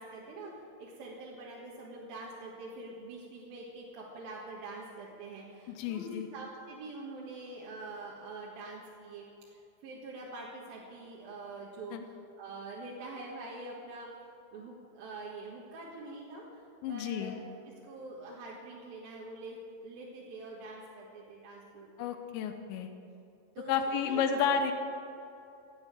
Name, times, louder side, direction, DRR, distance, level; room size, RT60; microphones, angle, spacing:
voice 1, 0.0-14.2 14.5-22.1 23.5-24.5, right 2 dB, 60° right, -4 dB, 3.1 m, -45 dB
voice 2, 5.8-6.3 11.9-12.0 16.8-17.3 22.0-22.9 23.7-24.7, left 7 dB, 85° left, 7 dB, 3.1 m, -31 dB
17.0 x 9.4 x 8.8 m, 2.8 s
omnidirectional pair, 5.1 m